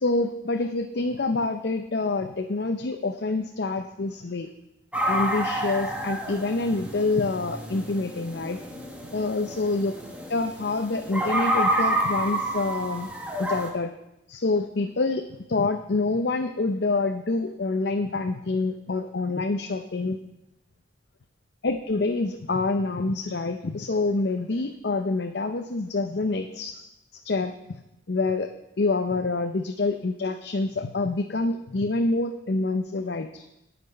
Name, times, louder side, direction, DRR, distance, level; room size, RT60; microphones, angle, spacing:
voice 1, 0.0-4.5 5.1-8.6 9.1-9.9 10.3-13.1 13.4-13.9 14.3-15.2 15.5-20.2 21.6-26.8 27.2-27.5 28.1-33.5, left 3 dB, 60° left, 6 dB, 0.6 m, -26 dB
sound 1, 4.9-13.7, right 1 dB, 5° right, 1.5 m, -29 dB
18.0 x 6.0 x 5.4 m, 0.87 s
head